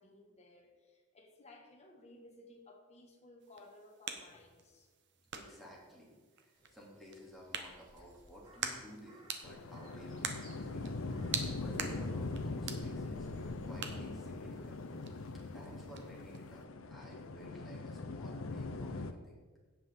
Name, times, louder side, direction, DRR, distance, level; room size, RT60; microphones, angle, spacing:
voice 1, 0.0-4.9, left 2 dB, 30° left, 1 dB, 1.6 m, -58 dB
sound 1, 3.4-16.7, right 6 dB, 60° right, 1.0 m, -46 dB
voice 2, 5.3-13.3 13.6-14.8 15.1-19.4, equal, ahead, -5 dB, 2.7 m, -54 dB
Crow, 6.5-15.4, right 1 dB, 20° right, 2.7 m, -65 dB
sound 2, 9.4-19.1, left 3 dB, 70° left, 0.7 m, -41 dB
17.0 x 5.9 x 3.6 m, 1.5 s
head